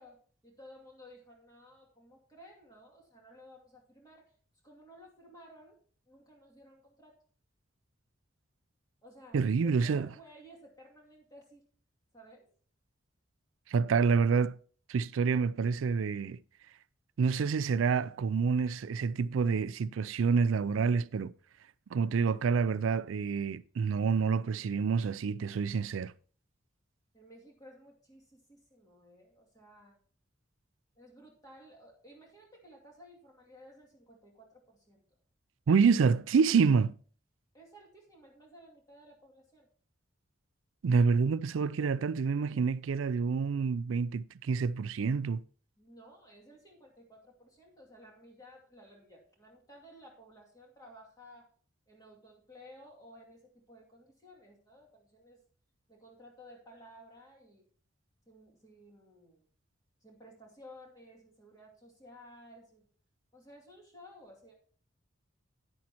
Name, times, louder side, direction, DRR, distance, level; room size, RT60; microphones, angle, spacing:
voice 1, 0.0-4.3 4.6-5.8 6.1-7.2 9.0-11.6 12.1-12.5 27.1-30.0 31.0-35.2 37.5-39.7 45.8-51.5 51.9-55.4 55.9-57.7 58.3-59.5 60.0-62.9 63.3-64.5, equal, 20° left, 2.5 m, -55 dB
voice 2, 9.3-10.1 13.7-14.6 14.9-16.4 17.2-21.3 21.9-26.1 35.7-36.9 40.8-45.4, right 5 dB, 85° right, 0.4 m, -27 dB
10.5 x 9.8 x 2.9 m
head